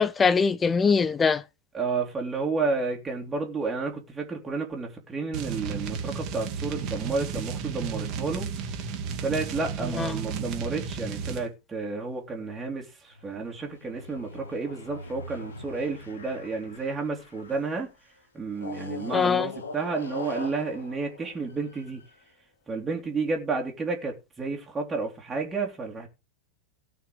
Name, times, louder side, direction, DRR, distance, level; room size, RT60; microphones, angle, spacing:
voice 1, 0.0-1.4 10.0-10.2 19.1-19.5, left 5 dB, 15° left, 0.8 m, -22 dB
voice 2, 1.7-8.5 9.2-17.9 18.3-22.0 22.7-26.1, right 4 dB, 15° right, 3.0 m, -31 dB
sound 1, 5.3-11.5, right 6 dB, 40° right, 2.4 m, -33 dB
sound 2, 13.1-17.8 18.5-22.1, left 3 dB, 70° left, 2.2 m, -41 dB
17.5 x 6.0 x 4.9 m
figure-of-eight pair, 90°, 0 cm